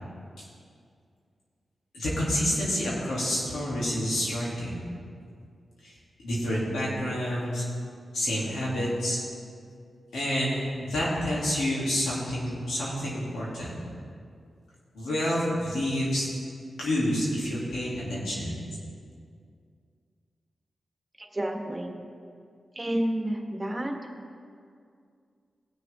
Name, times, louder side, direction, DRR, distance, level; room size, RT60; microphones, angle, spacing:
voice 1, 1.9-4.7 5.8-5.9 6.2-7.6 8.1-9.2 10.1-13.7 14.9-16.3 16.8-18.6, equal, 85° left, -7 dB, 3.1 m, -28 dB
voice 2, 21.2-21.9 22.7-23.9, right 1 dB, 25° right, 2 dB, 1.7 m, -30 dB
19.5 x 6.7 x 3.8 m, 2.3 s
supercardioid pair, 40°, 0 cm